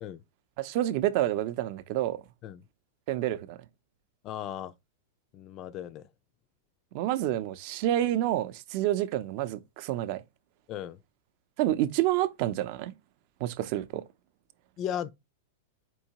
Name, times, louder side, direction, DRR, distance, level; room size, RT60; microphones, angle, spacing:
voice 1, 0.6-2.2 3.1-3.6 6.9-10.2 11.6-12.9 13.4-14.0, right 13 dB, 50° right, 0.5 m, -28 dB
voice 2, 4.2-4.8 5.3-6.1 10.7-11.0 14.8-15.1, left 10 dB, 35° left, 0.3 m, -36 dB
4.6 x 2.8 x 2.8 m
hypercardioid pair, 125°, 0 cm